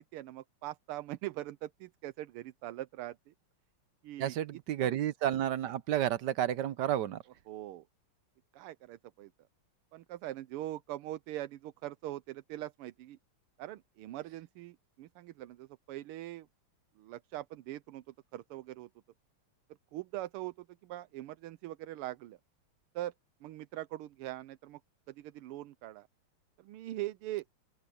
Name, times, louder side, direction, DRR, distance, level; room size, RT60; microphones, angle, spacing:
voice 1, 0.0-3.3 4.0-4.4 4.8-4.9 7.5-7.8 8.5-9.3 9.9-13.2 13.6-16.5 17.0-18.0 18.3-18.9 19.9-22.4 23.0-23.1 23.4-24.8 25.1-26.1 26.6-27.4, right 15 dB, 90° right, 1.6 m, -42 dB
voice 2, 4.2-7.2, right 11 dB, 70° right, 1.1 m, -31 dB
open air
omnidirectional pair, 2.4 m